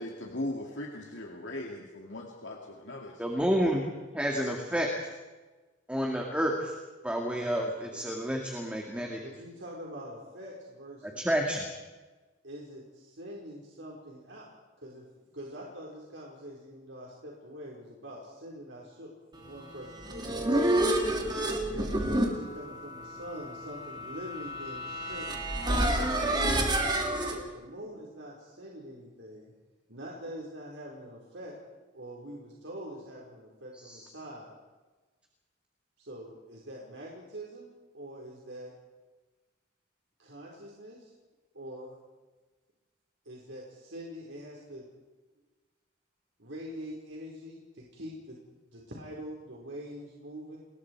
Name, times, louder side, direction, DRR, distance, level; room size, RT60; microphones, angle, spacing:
voice 1, 0.0-3.4, left 1 dB, 75° left, 0 dB, 2.4 m, -39 dB
voice 2, 3.2-3.9 4.1-5.1 5.9-6.7 7.0-9.2 11.2-11.7 33.8-34.0, equal, 5° right, 1 dB, 2.2 m, -29 dB
voice 3, 9.2-11.3 12.4-14.5 14.8-15.0 15.3-20.5 21.5-26.7 27.2-29.5 29.9-31.6 31.9-34.5 36.0-38.7 40.2-41.1 41.5-42.0 43.2-44.8 46.4-48.4 48.7-50.6, equal, 75° right, -3 dB, 4.8 m, -44 dB
sound 1, 19.8-27.4, right 1 dB, 25° right, 2.9 m, -29 dB
29.5 x 21.5 x 4.8 m, 1.2 s
head